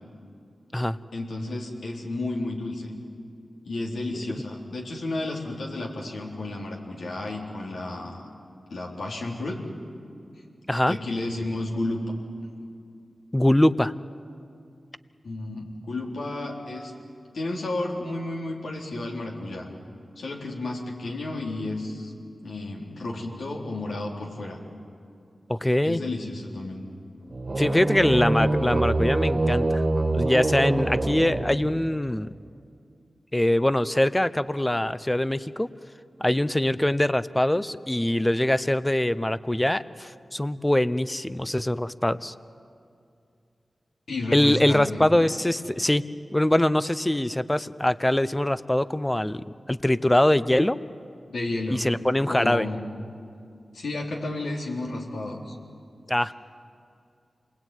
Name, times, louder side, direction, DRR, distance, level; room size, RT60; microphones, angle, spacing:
voice 1, 1.1-2.9 3.6-8.2 8.7-9.6 10.9-12.0 15.2-16.9 17.3-19.7 20.2-22.1 22.4-24.6 25.8-26.8 44.1-45.1 51.3-51.9 52.3-52.9 53.7-55.6, left 2 dB, 90° left, -1 dB, 3.9 m, -32 dB
voice 2, 13.3-13.9 25.5-26.0 27.6-29.8 30.1-32.3 33.3-35.7 36.2-42.3 44.3-46.0 46.3-50.8 51.7-52.7 56.1-56.3, left 1 dB, 15° left, 15 dB, 0.8 m, -23 dB
sound 1, 27.3-32.0, right 2 dB, 45° right, 2.1 m, -25 dB
28.0 x 21.0 x 9.3 m, 2.4 s
cardioid pair, 50°, 0 cm